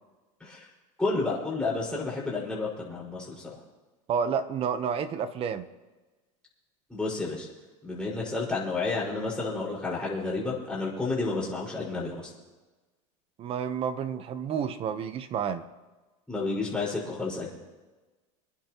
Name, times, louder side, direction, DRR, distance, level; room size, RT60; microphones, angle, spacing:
voice 1, 1.0-3.6 6.9-7.5 7.8-12.3 16.3-17.5, left 3 dB, 5° left, 5.3 m, -31 dB
voice 2, 4.1-5.7 13.4-15.7, right 7 dB, 35° right, 1.0 m, -30 dB
26.5 x 10.5 x 3.1 m
supercardioid pair, 140°, 18 cm